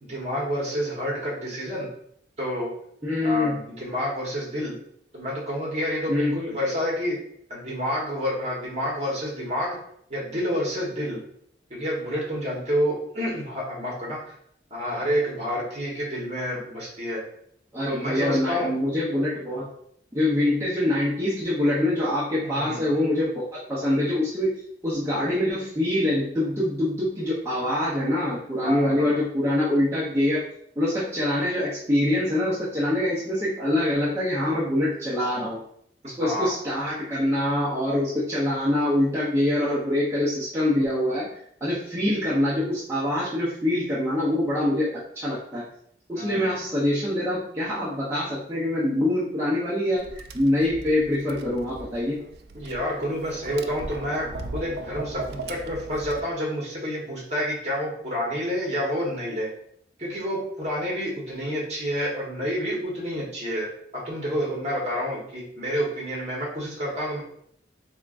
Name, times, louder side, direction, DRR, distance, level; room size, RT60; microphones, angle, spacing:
voice 1, 0.0-1.9 2.4-2.7 3.2-4.7 5.1-7.2 7.5-9.8 10.1-11.2 11.7-14.2 14.7-17.2 17.9-18.7 22.4-22.9 28.6-29.2 36.0-36.5 46.1-46.6 52.5-54.3 54.5-59.5 60.0-63.7 64.0-67.2, equal, 40° right, -3 dB, 1.3 m, -29 dB
voice 2, 3.0-3.6 6.1-6.4 17.7-19.7 20.1-30.4 30.8-35.6 36.2-45.7 46.1-52.2, left 1 dB, 15° right, -9 dB, 0.8 m, -25 dB
Tap, 50.0-56.2, right 2 dB, 60° right, 0.3 m, -38 dB
3.5 x 3.5 x 2.5 m, 0.68 s
head